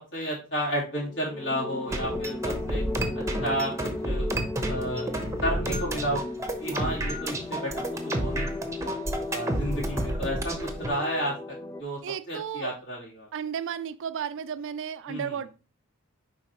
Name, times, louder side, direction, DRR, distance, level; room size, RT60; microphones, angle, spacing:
voice 1, 0.1-2.8 3.4-4.3 4.6-5.1 5.4-6.2 6.6-7.7 8.2-8.5 8.8-9.0 9.3-11.3 11.8-12.0 12.3-13.3 15.1-15.3, equal, 55° left, 3.4 m, -31 dB
sound 1, 1.0-11.8, left 2 dB, 15° left, 0.4 m, -35 dB
sound 2, 1.9-10.9, right 1 dB, 15° right, 0.9 m, -31 dB
voice 2, 12.0-12.8 13.3-15.5, right 8 dB, 60° right, 0.4 m, -33 dB
7.3 x 5.1 x 3.0 m
head